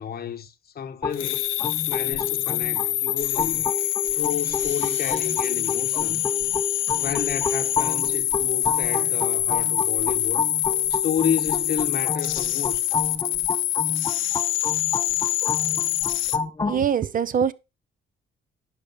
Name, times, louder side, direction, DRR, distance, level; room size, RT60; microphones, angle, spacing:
voice 1, 0.0-1.5 1.9-3.7 4.1-6.2 7.0-10.4 10.9-12.8, left 8 dB, 50° left, 1.0 m, -31 dB
sound 1, 1.0-16.8, left 4 dB, 20° left, 0.6 m, -30 dB
sound 2, 1.1-16.4, left 14 dB, 85° left, 0.6 m, -25 dB
sound 3, 3.2-7.8, right 8 dB, 65° right, 1.2 m, -49 dB
voice 2, 16.6-17.5, right 8 dB, 45° right, 0.5 m, -23 dB
10.5 x 5.2 x 4.1 m
cardioid pair, 90°, 20 cm